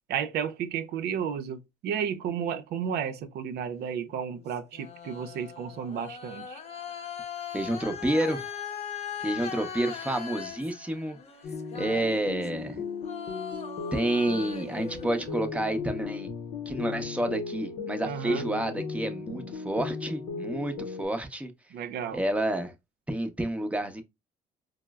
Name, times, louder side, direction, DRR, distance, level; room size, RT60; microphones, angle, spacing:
voice 1, 0.1-6.6 18.0-18.4 21.7-22.2, right 8 dB, 75° right, 0.6 m, -32 dB
sound 1, 4.1-12.7 13.0-15.7, left 7 dB, 40° left, 0.7 m, -40 dB
voice 2, 7.5-8.4 9.2-11.2 11.7-12.8 13.9-16.3 16.7-21.5 22.1-22.7 23.1-24.0, right 1 dB, 5° right, 0.7 m, -29 dB
sound 2, 11.4-21.1, left 4 dB, 80° left, 0.7 m, -36 dB
4.3 x 2.0 x 2.3 m
cardioid pair, 110°, 17 cm